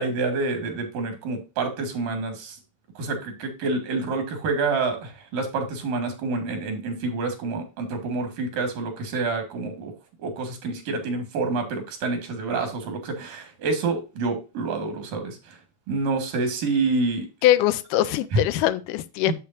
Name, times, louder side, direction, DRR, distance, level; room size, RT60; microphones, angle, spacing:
voice 1, 0.0-2.6 3.0-9.9 10.2-15.4 15.9-17.3 18.3-18.4 19.3-19.4, right 3 dB, 90° right, 3.7 m, -27 dB
voice 2, 17.4-19.3, left 14 dB, 85° left, 2.2 m, -22 dB
8.5 x 7.7 x 2.6 m
omnidirectional pair, 3.7 m